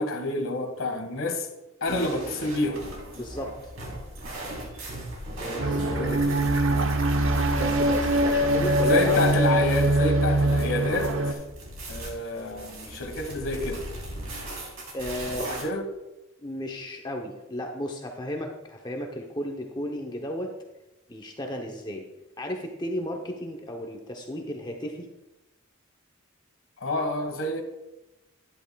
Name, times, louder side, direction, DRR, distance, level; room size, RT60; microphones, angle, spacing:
voice 1, 0.0-1.5 1.8-2.8 5.8-6.3 8.9-11.4 11.9-13.8 15.4-15.9 26.8-27.6, left 1 dB, 70° left, 4 dB, 1.5 m, -28 dB
sound 1, 1.9-15.6, right 1 dB, 85° right, 3.4 m, -38 dB
voice 2, 3.1-3.5 5.4-6.2 7.5-9.2 14.9-15.5 16.4-20.5 21.1-22.1 22.4-25.1, equal, 20° left, 2 dB, 0.7 m, -34 dB
sound 2, 5.6-11.3, right 1 dB, 70° right, 0.9 m, -23 dB
11.5 x 10.0 x 2.3 m, 1.0 s
head